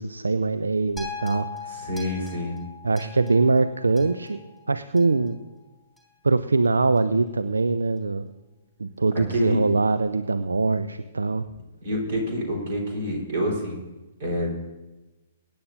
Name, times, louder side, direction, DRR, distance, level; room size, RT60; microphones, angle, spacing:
voice 1, 0.0-1.5 2.8-4.4 4.7-5.4 6.2-8.3 8.8-11.4, right 3 dB, 70° right, 12 dB, 0.4 m, -22 dB
sound 1, 1.0-5.3 6.0-6.1, left 5 dB, ahead, 3.3 m, -40 dB
voice 2, 1.7-2.6 9.3-9.6 11.8-13.8 14.2-14.5, equal, 50° right, 0 dB, 4.0 m, -27 dB
23.5 x 10.0 x 2.6 m, 1.1 s
figure-of-eight pair, 120°, 0 cm